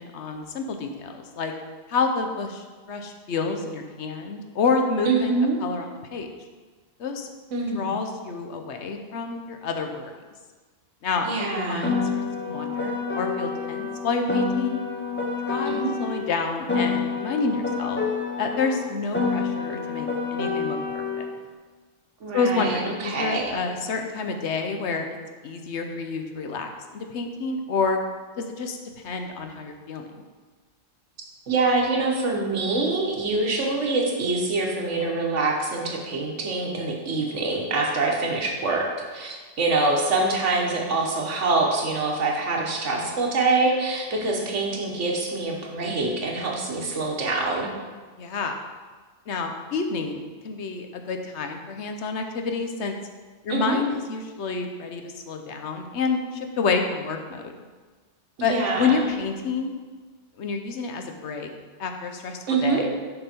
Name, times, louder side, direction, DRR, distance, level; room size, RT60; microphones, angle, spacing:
voice 1, 0.0-1.5 1.9-5.3 5.6-6.3 7.0-7.3 7.7-10.2 11.0-14.8 15.5-18.0 18.4-21.3 22.3-25.1 25.4-28.0 28.4-28.8 29.0-30.2 48.2-48.6 49.3-53.0 53.4-57.5 58.4-59.7 60.4-61.5 61.8-62.9, left 4 dB, 70° left, 5 dB, 1.0 m, -28 dB
voice 2, 5.1-5.6 7.5-7.9 11.2-12.0 15.7-15.9 22.2-23.6 31.5-47.7 53.5-53.8 58.4-59.0 62.5-62.9, right 3 dB, 80° right, 0 dB, 1.5 m, -25 dB
Piano, 11.8-16.3 16.7-21.3, left 5 dB, 10° left, 0.6 m, -28 dB
6.8 x 5.7 x 4.3 m, 1.4 s
omnidirectional pair, 1.2 m